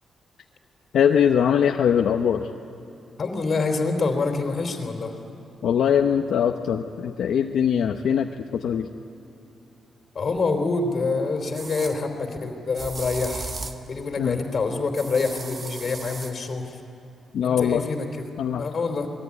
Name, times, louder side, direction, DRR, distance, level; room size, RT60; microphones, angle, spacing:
voice 1, 0.9-2.5 5.6-8.9 14.2-14.4 17.3-17.8 18.4-18.6, left 8 dB, 70° left, 4 dB, 0.9 m, -22 dB
voice 2, 3.2-5.2 10.1-13.5 13.9-16.8 17.4-18.1 18.6-19.1, left 4 dB, 35° left, 4 dB, 3.6 m, -26 dB
sound 1, 10.4-10.5 11.5-12.0 12.7-13.9 14.9-16.3, right 3 dB, 30° right, 1.4 m, -36 dB
27.5 x 20.5 x 9.8 m, 2.9 s
wide cardioid pair, 160°, 0 cm